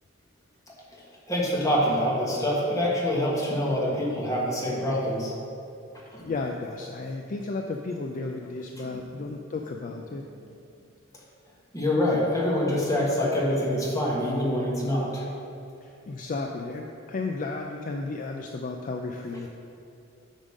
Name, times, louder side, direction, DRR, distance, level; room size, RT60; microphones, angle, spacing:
voice 1, 1.3-5.3 6.1-6.2 8.8-9.0 11.7-15.3, left 1 dB, 15° left, -4 dB, 1.4 m, -25 dB
voice 2, 6.2-10.2 15.8-19.5, left 3 dB, 40° left, 2 dB, 0.4 m, -33 dB
8.9 x 3.6 x 6.3 m, 2.7 s
head